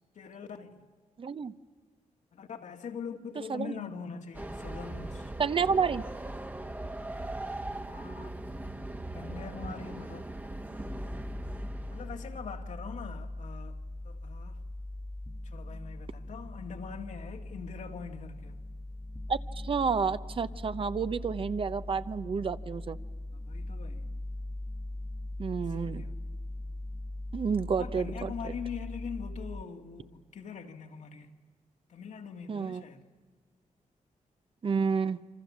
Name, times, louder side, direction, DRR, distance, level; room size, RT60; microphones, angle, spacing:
voice 1, 0.2-0.7 2.3-5.3 7.9-8.3 9.1-10.2 11.9-13.8 14.0-14.6 15.4-18.6 23.3-24.1 25.6-26.1 27.8-31.3 31.9-33.0, left 6 dB, 70° left, 2.0 m, -43 dB
voice 2, 1.2-1.5 3.5-3.7 5.4-6.0 19.3-23.0 25.4-26.0 27.3-28.3 32.5-32.8 34.6-35.2, right 5 dB, 45° right, 0.8 m, -30 dB
Train, 4.3-12.5, right 1 dB, 15° right, 1.2 m, -40 dB
sound 1, 10.8-29.6, left 1 dB, 10° left, 1.3 m, -40 dB
28.0 x 25.5 x 7.4 m
cardioid pair, 110°, 13 cm